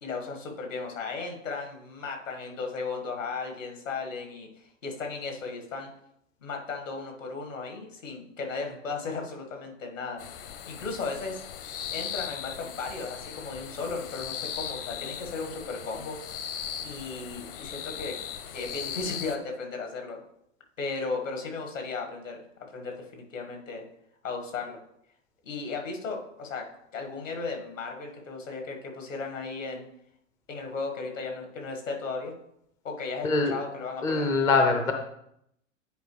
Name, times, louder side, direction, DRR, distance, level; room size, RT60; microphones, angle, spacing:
voice 1, 0.0-5.9 6.4-10.2 10.5-11.4 11.9-16.2 16.8-18.2 18.5-20.2 20.8-23.8 24.2-24.8 25.4-26.7 26.9-29.9 30.5-32.3 32.8-34.3, left 4 dB, 75° left, 3 dB, 1.8 m, -35 dB
sound 1, 10.2-19.4, left 8 dB, 45° left, 0.8 m, -38 dB
voice 2, 34.0-34.9, left 3 dB, 10° left, 4 dB, 0.4 m, -23 dB
9.3 x 4.6 x 3.2 m, 0.75 s
figure-of-eight pair, 105°, 39 cm